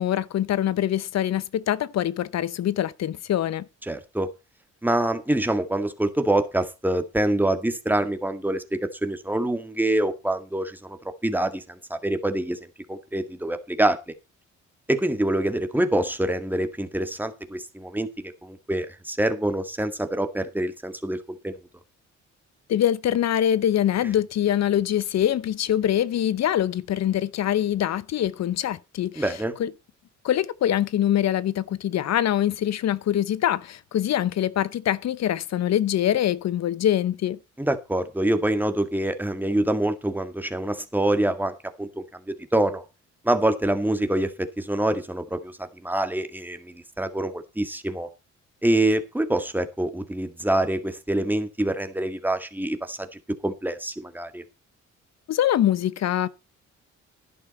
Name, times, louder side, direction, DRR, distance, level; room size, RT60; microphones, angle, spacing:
voice 1, 0.0-3.6 22.7-29.2 29.6-29.7 30.2-37.4 55.3-56.3, left 11 dB, 60° left, 0.8 m, -24 dB
voice 2, 3.8-4.3 4.8-12.6 12.9-14.0 14.9-21.6 29.2-29.5 37.6-42.8 43.2-48.1 48.6-53.1 53.4-54.4, right 1 dB, 5° right, 1.9 m, -26 dB
11.0 x 11.0 x 4.3 m
cardioid pair, 90°, 30 cm